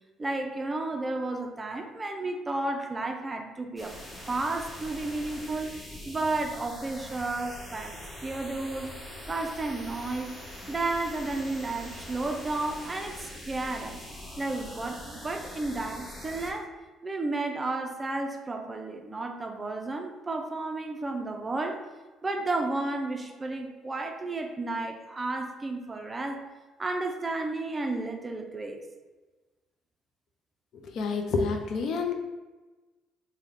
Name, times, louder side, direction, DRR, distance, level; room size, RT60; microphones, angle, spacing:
voice 1, 0.2-3.9 4.3-9.0 9.3-10.4 10.7-14.0 14.4-16.7 17.0-21.8 22.2-26.4 26.8-28.8, right 2 dB, 20° right, 4 dB, 0.4 m, -32 dB
sound 1, 3.8-16.5, left 1 dB, 15° left, 0.8 m, -43 dB
voice 2, 30.7-32.1, left 4 dB, 60° left, 4 dB, 0.4 m, -29 dB
3.3 x 2.2 x 3.7 m, 1.2 s
cardioid pair, 95°, 0 cm